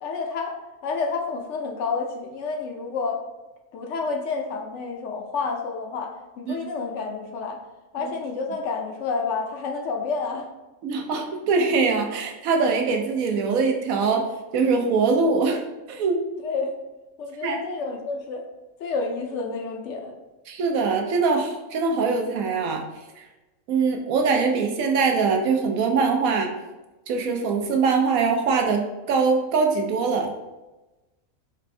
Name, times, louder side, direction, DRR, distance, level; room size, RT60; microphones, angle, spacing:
voice 1, 0.0-3.2 3.7-7.6 7.9-10.5 16.4-16.7 17.2-18.4 18.8-20.2, left 4 dB, 65° left, 2 dB, 0.8 m, -29 dB
voice 2, 10.8-14.3 14.5-15.6 15.9-16.2 17.4-17.6 20.5-22.8 23.2-23.3 23.7-26.5 27.1-30.3, right 4 dB, 90° right, 2 dB, 1.1 m, -22 dB
4.2 x 2.6 x 3.2 m, 1.1 s
omnidirectional pair, 1.4 m